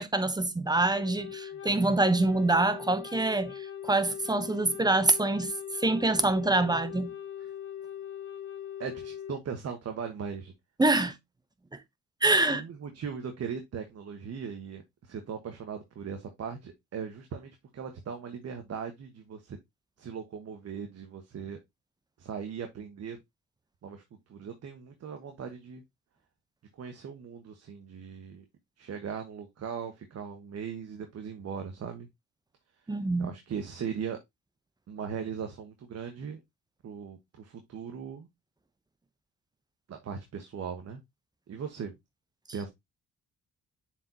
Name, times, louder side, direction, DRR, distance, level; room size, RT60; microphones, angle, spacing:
voice 1, 0.0-7.1 10.8-11.1 11.7-11.8 12.2-12.6 32.9-33.3, right 2 dB, 15° right, 0.8 m, -26 dB
Wind instrument woodwind instrument, 0.8-9.4, left 9 dB, 45° left, 1.9 m, -41 dB
voice 2, 8.8-10.5 12.5-19.6 20.0-21.6 22.2-23.2 23.8-24.0 24.3-25.8 26.7-28.4 28.8-32.1 33.2-34.2 34.9-36.4 36.8-38.3 39.9-41.0 41.5-41.9 42.5-42.7, right 7 dB, 55° right, 1.3 m, -39 dB
7.2 x 4.8 x 2.8 m
cardioid pair, 90°, 30 cm